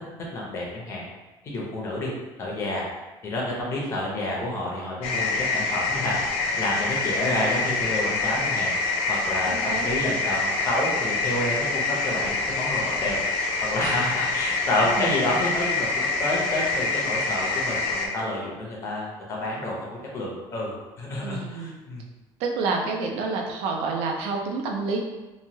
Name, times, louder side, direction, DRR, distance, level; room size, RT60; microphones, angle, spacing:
voice 1, 0.3-1.0 1.4-2.1 2.4-2.9 3.2-6.2 6.6-22.0, left 1 dB, 30° left, -3 dB, 0.6 m, -29 dB
sound 1, 5.0-18.1, left 3 dB, 75° left, 0.4 m, -26 dB
voice 2, 9.5-9.9 14.8-15.2 21.2-21.8 22.4-25.0, right 4 dB, 90° right, 1 dB, 0.5 m, -29 dB
3.0 x 2.2 x 2.7 m, 1.1 s
cardioid pair, 180°, 10 cm